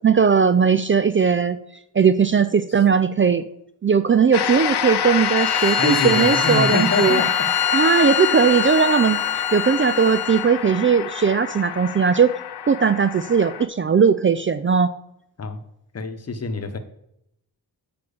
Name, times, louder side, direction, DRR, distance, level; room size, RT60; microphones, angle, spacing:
voice 1, 0.0-1.6 1.9-3.4 3.8-7.2 7.7-9.2 9.5-12.3 12.7-14.9, right 6 dB, 30° right, 12 dB, 0.4 m, -18 dB
sound 1, 4.3-13.7, left 9 dB, 80° left, 0.7 m, -26 dB
Bowed string instrument, 5.1-10.5, left 6 dB, 65° left, 1.2 m, -25 dB
voice 2, 5.8-7.5 15.4-15.6 15.9-16.8, left 3 dB, 40° left, 7 dB, 1.0 m, -25 dB
6.8 x 5.2 x 6.8 m, 0.79 s
wide cardioid pair, 100°, 39 cm